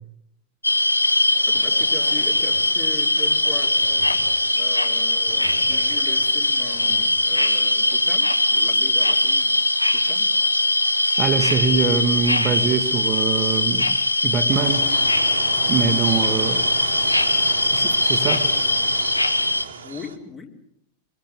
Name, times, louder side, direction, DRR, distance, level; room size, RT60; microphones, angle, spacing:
sound 1, 0.6-19.6, left 2 dB, 85° left, 1.3 m, -20 dB
sound 2, 1.3-7.1, left 4 dB, 60° left, 3.5 m, -43 dB
voice 1, 1.4-3.9 4.5-9.6 9.9-10.3 16.2-16.7 19.8-20.5, left 4 dB, 20° left, 3 dB, 3.6 m, -39 dB
voice 2, 11.2-14.0 14.2-14.9 15.7-16.6 17.7-18.5, right 6 dB, 30° right, 6 dB, 1.8 m, -23 dB
sound 3, 14.5-20.2, right 5 dB, 70° right, 2.1 m, -32 dB
25.0 x 22.0 x 7.1 m, 0.73 s
figure-of-eight pair, 90°, 0 cm